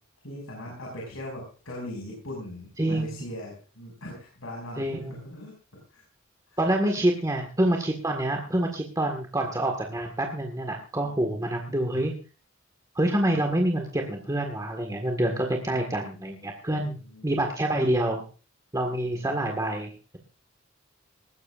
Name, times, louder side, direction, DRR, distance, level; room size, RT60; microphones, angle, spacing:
voice 1, 0.2-5.5 5.9-6.0 6.5-6.6 11.0-11.8 15.6-16.2 16.8-17.4 19.0-19.6, left 1 dB, 75° left, -2 dB, 6.2 m, -41 dB
voice 2, 2.8-3.1 4.8-5.2 6.6-12.1 13.0-18.2 18.7-20.2, right 1 dB, 15° right, 2 dB, 1.7 m, -27 dB
19.5 x 16.0 x 2.5 m, 0.36 s
head